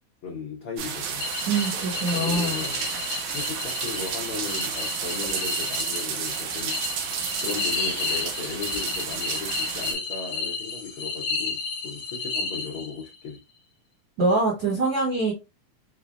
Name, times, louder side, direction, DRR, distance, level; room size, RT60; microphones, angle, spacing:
voice 1, 0.2-1.3 2.1-2.9 3.3-7.0 7.4-13.4, left 4 dB, 75° left, 1.2 m, -36 dB
sound 1, 0.8-9.9, right 7 dB, 80° right, 2.0 m, -32 dB
sound 2, 1.2-13.2, left 4 dB, 55° left, 1.6 m, -32 dB
voice 2, 1.5-2.6 14.2-15.3, right 2 dB, 65° right, 1.1 m, -24 dB
5.4 x 2.0 x 2.4 m
omnidirectional pair, 3.5 m